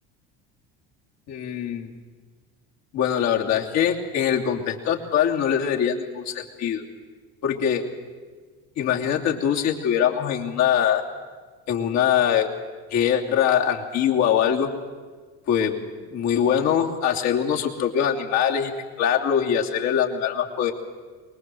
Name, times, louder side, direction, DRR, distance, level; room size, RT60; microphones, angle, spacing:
voice 1, 1.3-1.9 2.9-6.8 7.4-7.8 8.8-11.0 11.7-12.5 12.9-14.7 15.5-15.8 16.1-18.7 19.0-20.7, left 9 dB, 60° left, 1 dB, 3.0 m, -23 dB
23.0 x 21.0 x 7.8 m, 1.4 s
supercardioid pair, 100°, 31 cm